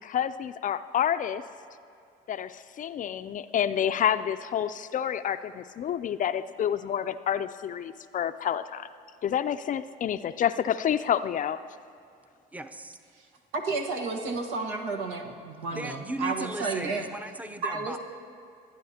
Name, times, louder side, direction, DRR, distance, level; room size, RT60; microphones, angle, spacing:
voice 1, 0.0-1.4 2.3-8.9 9.2-11.6, left 9 dB, 45° left, 12 dB, 0.4 m, -28 dB
voice 2, 12.5-13.0 15.7-18.0, right 1 dB, 10° right, 7 dB, 0.7 m, -37 dB
voice 3, 13.5-17.1 17.6-18.0, right 3 dB, 90° right, 2 dB, 1.3 m, -31 dB
27.0 x 9.4 x 2.8 m, 2.5 s
supercardioid pair, 80°, 20 cm